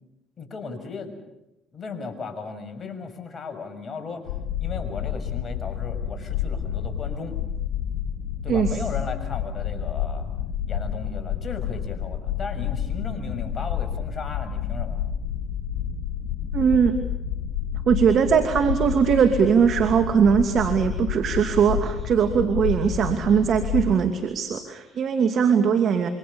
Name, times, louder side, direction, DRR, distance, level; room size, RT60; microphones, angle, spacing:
voice 1, 0.4-1.1 1.7-4.3 4.6-7.4 8.4-10.3 10.7-15.0, left 4 dB, 40° left, 7 dB, 6.8 m, -36 dB
sound 1, 4.3-23.9, left 9 dB, 80° left, 3.8 m, -29 dB
voice 2, 16.5-17.0 17.9-26.1, right 7 dB, 60° right, 8 dB, 2.6 m, -20 dB
27.5 x 25.0 x 7.1 m, 0.92 s
supercardioid pair, 65°, 0 cm